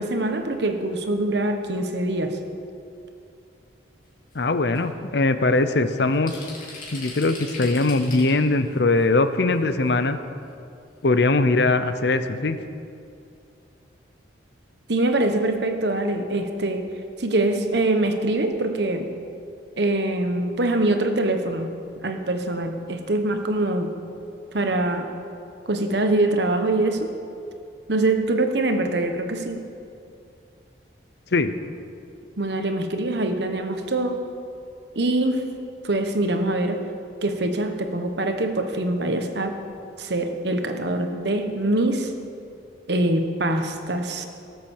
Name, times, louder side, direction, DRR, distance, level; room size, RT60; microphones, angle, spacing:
voice 1, 0.0-2.4 14.9-16.9 17.2-19.1 19.8-21.7 22.0-23.9 24.5-25.1 25.7-27.1 27.9-29.6 32.4-34.2 34.9-35.4 35.8-36.8 37.2-39.6 40.0-42.1 42.9-44.3, right 2 dB, 65° right, 6 dB, 1.2 m, -24 dB
voice 2, 4.3-6.5 6.9-10.2 11.0-12.6 31.3-31.5, left 2 dB, 60° left, 11 dB, 0.7 m, -21 dB
sound 1, 4.3-4.4 4.8-4.9 5.6-5.7 5.9-8.6 9.0-9.1 9.9-10.0 10.4-10.6 10.9-11.0, left 2 dB, 45° left, 2.8 m, -40 dB
17.5 x 7.8 x 7.2 m, 2.5 s
head